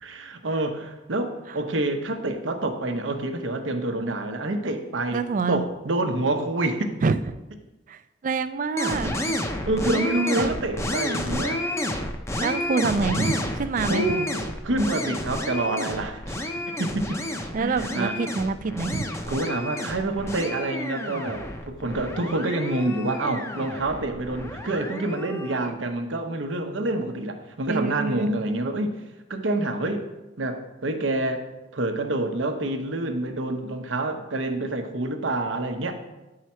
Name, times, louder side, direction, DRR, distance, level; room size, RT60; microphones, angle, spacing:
voice 1, 0.0-5.2 5.5-7.0 9.0-9.2 9.6-11.6 13.9-14.3 14.6-16.4 16.7-17.2 17.6-18.2 19.3-29.0 29.3-30.1 30.4-31.5 31.7-35.9, right 2 dB, 85° right, 6 dB, 0.9 m, -27 dB
voice 2, 5.1-5.6 7.0-7.2 7.9-9.1 10.3-10.5 12.4-14.0 17.5-19.0 27.7-28.3, right 4 dB, 45° right, 12 dB, 0.4 m, -26 dB
sound 1, 8.8-25.7, left 1 dB, 15° left, 0.6 m, -31 dB
9.4 x 4.8 x 4.3 m, 1.0 s
head